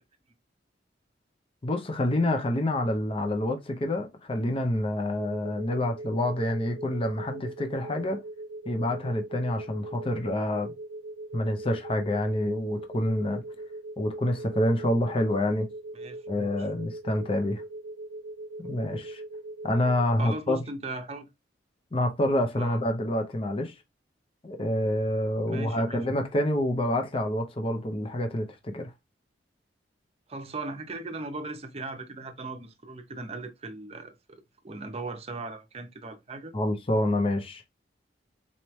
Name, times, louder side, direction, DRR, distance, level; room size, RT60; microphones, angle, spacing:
voice 1, 1.6-8.2 8.7-10.7 11.3-13.4 14.0-15.7 16.3-17.6 18.6-19.2 19.6-20.6 21.9-23.8 24.4-28.9 36.5-37.7, left 1 dB, 30° left, 0.6 m, -27 dB
sound 1, 5.2-20.0, right 2 dB, 70° right, 0.4 m, -41 dB
voice 2, 15.9-16.7 20.2-21.3 22.6-22.8 25.5-26.0 30.3-36.5, right 2 dB, 35° right, 0.7 m, -38 dB
4.2 x 3.1 x 3.0 m
head